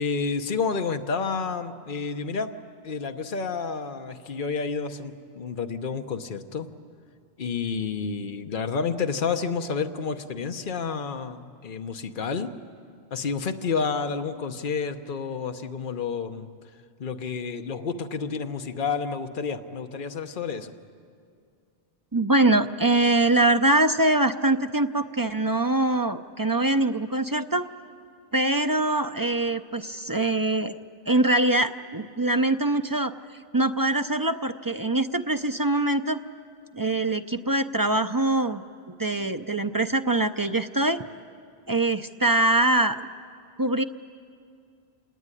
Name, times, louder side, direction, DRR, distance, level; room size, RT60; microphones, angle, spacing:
voice 1, 0.0-2.6 2.8-6.7 7.4-12.5 13.1-16.5 17.0-20.7, left 5 dB, 55° left, 7 dB, 1.2 m, -30 dB
voice 2, 22.1-27.7 28.3-30.8 31.1-33.1 33.5-36.2 36.7-38.6 39.0-41.0 41.7-43.0 43.6-43.8, right 2 dB, 25° right, 9 dB, 0.5 m, -23 dB
27.5 x 19.0 x 9.9 m, 2.3 s
omnidirectional pair, 1.1 m